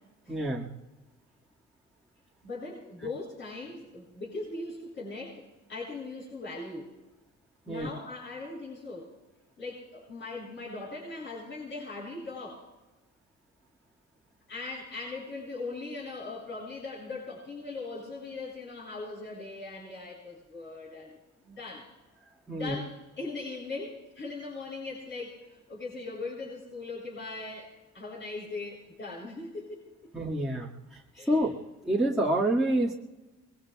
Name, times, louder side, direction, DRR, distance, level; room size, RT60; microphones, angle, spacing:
voice 1, 0.3-0.7 7.7-7.9 22.5-22.7 30.1-30.7 31.3-31.6 31.8-32.9, right 1 dB, ahead, -7 dB, 2.0 m, -27 dB
voice 2, 2.4-6.9 7.7-9.1 9.6-12.6 14.5-21.2 21.4-21.9 22.5-27.7 27.9-30.1 31.1-31.5, left 3 dB, 40° left, -7 dB, 7.6 m, -40 dB
26.0 x 22.0 x 2.4 m, 1.1 s
cardioid pair, 90°, 30 cm